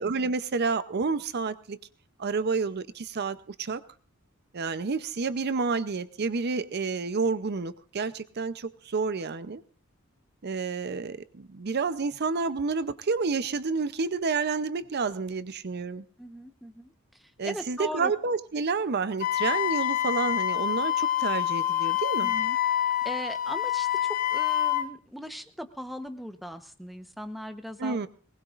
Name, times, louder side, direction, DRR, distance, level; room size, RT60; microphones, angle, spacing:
voice 1, 0.0-1.8 2.2-3.8 4.5-9.6 10.4-16.1 17.4-22.3 27.8-28.1, right 4 dB, 50° right, 13 dB, 0.6 m, -29 dB
voice 2, 16.2-16.9 17.4-18.1 22.2-22.6 23.0-28.1, equal, ahead, 8 dB, 0.9 m, -39 dB
Wind instrument woodwind instrument, 19.2-24.9, left 12 dB, 40° left, 0.8 m, -27 dB
21.5 x 19.5 x 2.5 m, 0.39 s
head